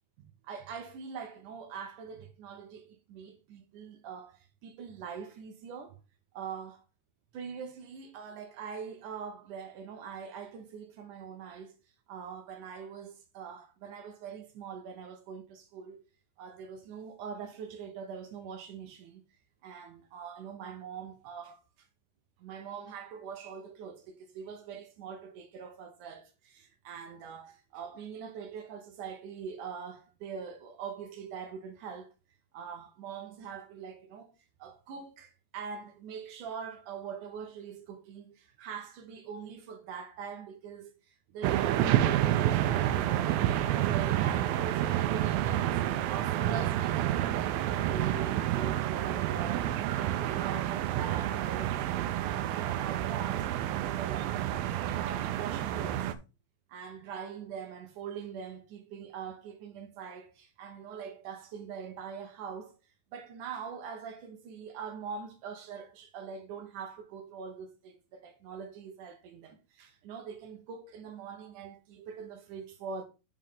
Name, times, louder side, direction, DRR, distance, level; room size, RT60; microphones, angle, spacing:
voice 1, 0.2-6.0 6.3-6.8 7.3-11.7 12.1-16.0 16.4-19.2 19.6-21.9 22.4-32.1 32.5-34.3 34.6-43.3 43.8-56.1 56.7-62.8 63.1-73.0, right 6 dB, 70° right, 2.0 m, -43 dB
sound 1, 41.4-56.1, right 12 dB, 90° right, 2.1 m, -29 dB
7.5 x 6.1 x 3.9 m
omnidirectional pair, 4.9 m